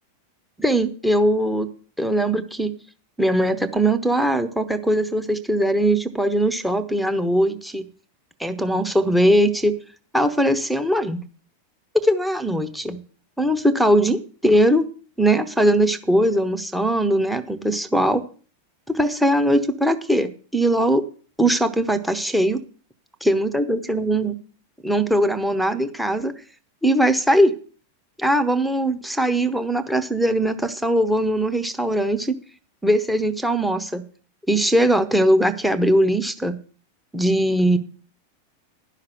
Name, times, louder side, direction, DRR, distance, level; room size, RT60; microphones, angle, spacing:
voice 1, 0.6-1.7 2.0-2.7 3.2-7.9 8.4-9.7 10.1-11.2 11.9-13.0 13.4-14.8 15.2-18.2 18.9-21.0 21.4-22.6 23.2-24.4 24.8-26.3 26.8-27.5 28.2-32.4 32.8-34.0 34.5-36.6 37.1-37.8, right 1 dB, ahead, 12 dB, 0.9 m, -20 dB
12.0 x 5.8 x 7.8 m, 0.41 s
figure-of-eight pair, 90°, 0 cm